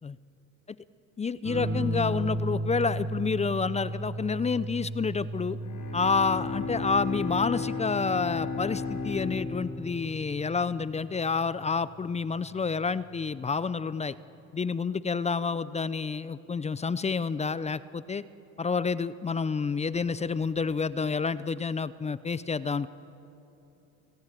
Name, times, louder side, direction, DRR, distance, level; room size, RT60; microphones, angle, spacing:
voice 1, 1.2-5.6 5.9-14.1 14.5-18.2 18.6-22.9, left 5 dB, 15° left, 16 dB, 0.5 m, -29 dB
sound 1, 1.4-10.5 12.0-12.5, right 1 dB, 40° right, 4.2 m, -35 dB
Bowed string instrument, 5.5-11.1, left 4 dB, 45° left, 6.3 m, -34 dB
29.0 x 17.5 x 9.1 m, 3.0 s
supercardioid pair, 100°, 39 cm